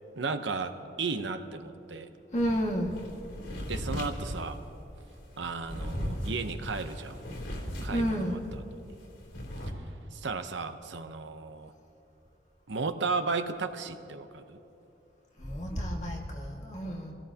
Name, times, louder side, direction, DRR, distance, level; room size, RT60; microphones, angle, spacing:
voice 1, 0.2-2.1 3.7-4.6 5.4-7.2 7.8-8.6 10.1-11.7 12.7-14.6, right 4 dB, 85° right, 8 dB, 0.8 m, -34 dB
voice 2, 2.3-3.0 7.9-8.4 15.4-17.1, equal, 40° left, -2 dB, 1.9 m, -31 dB
sound 1, 2.4-8.6 8.9-9.7, equal, 85° left, 3.4 m, -37 dB
26.0 x 17.0 x 2.9 m, 2.8 s
head